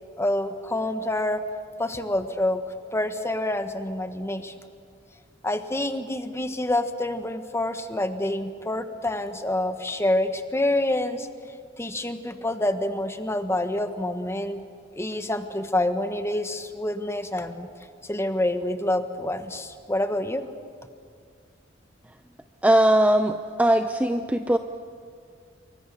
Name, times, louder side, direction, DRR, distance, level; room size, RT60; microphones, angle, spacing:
voice 1, 0.2-1.4 1.8-2.6 2.9-4.5 5.4-11.3 11.8-14.6 14.9-17.7 18.1-20.4, left 1 dB, 15° left, 8 dB, 1.3 m, -27 dB
voice 2, 22.6-24.6, right 1 dB, 10° right, 7 dB, 0.6 m, -20 dB
27.5 x 24.0 x 6.9 m, 2.2 s
head